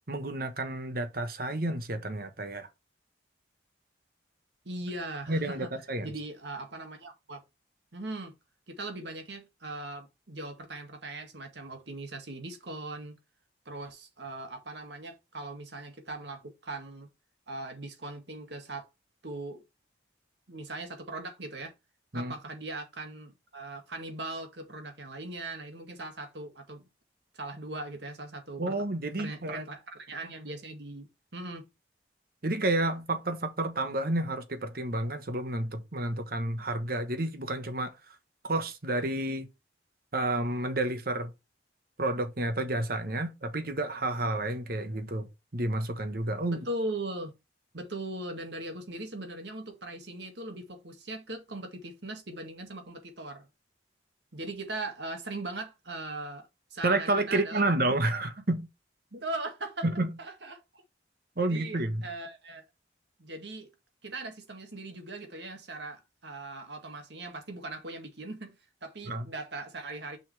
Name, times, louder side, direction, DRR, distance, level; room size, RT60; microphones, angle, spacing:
voice 1, 0.1-2.7 5.3-6.1 22.1-22.3 28.6-29.6 32.4-38.1 38.4-39.5 40.1-41.3 42.0-45.3 45.5-46.6 56.8-58.7 59.8-60.1 61.4-62.1 69.1-69.2, right 2 dB, 50° right, 1.1 m, -30 dB
voice 2, 4.7-5.7 6.0-7.4 7.9-8.4 8.7-13.2 13.7-17.1 17.5-18.9 19.2-19.6 20.5-21.7 22.1-26.8 27.3-28.8 29.2-31.1 31.3-31.7 46.5-47.3 47.7-53.5 54.3-57.7 59.1-59.9 60.2-60.8 61.4-62.6 63.2-63.7 64.0-68.5 68.8-70.2, right 2 dB, 70° right, 1.9 m, -39 dB
6.1 x 5.5 x 3.2 m
head